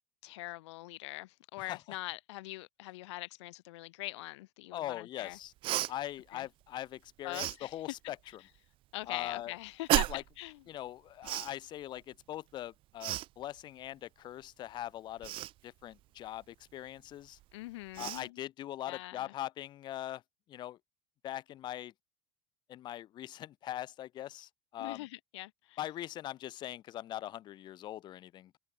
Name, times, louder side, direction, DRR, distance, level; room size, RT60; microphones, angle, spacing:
voice 1, 0.2-5.4 6.3-6.5 7.2-7.8 8.9-10.6 17.5-18.4 18.8-19.3 24.8-25.8, left 19 dB, 85° left, 6.3 m, -43 dB
voice 2, 1.6-2.0 4.7-5.5 5.9-8.4 9.1-9.5 10.1-10.2 10.7-15.3 15.6-17.4 18.0-20.2 20.5-20.8 21.2-21.9 22.7-25.1 25.8-28.6, left 13 dB, 30° left, 2.1 m, -41 dB
Cough, 5.6-5.9 7.3-7.6 9.9-10.3 11.2-11.5 13.0-13.3 15.2-15.5 17.4-17.5 17.9-18.2, right 16 dB, 35° right, 1.6 m, -31 dB
cardioid pair, 170°, 14 cm